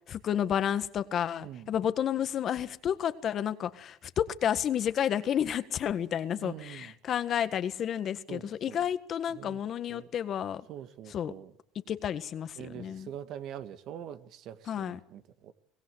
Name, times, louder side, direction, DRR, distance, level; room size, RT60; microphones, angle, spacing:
voice 1, 0.1-10.7 11.1-11.3 11.9-13.1 14.7-15.0, left 9 dB, 50° left, 12 dB, 1.6 m, -31 dB
voice 2, 6.4-6.9 8.3-8.9 9.3-9.6 9.9-10.1 10.7-11.5 12.6-15.5, right 10 dB, 60° right, 11 dB, 1.7 m, -44 dB
23.5 x 18.0 x 8.0 m, 0.65 s
supercardioid pair, 90°, 0 cm